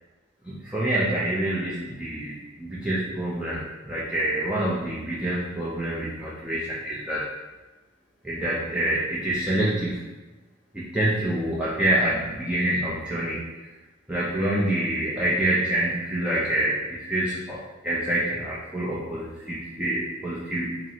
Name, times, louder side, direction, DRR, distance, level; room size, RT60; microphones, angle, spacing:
voice 1, 0.4-7.2 8.2-10.1 10.7-13.4 14.1-20.8, right 1 dB, 5° right, -8 dB, 0.4 m, -26 dB
5.3 x 2.0 x 2.7 m, 1.1 s
head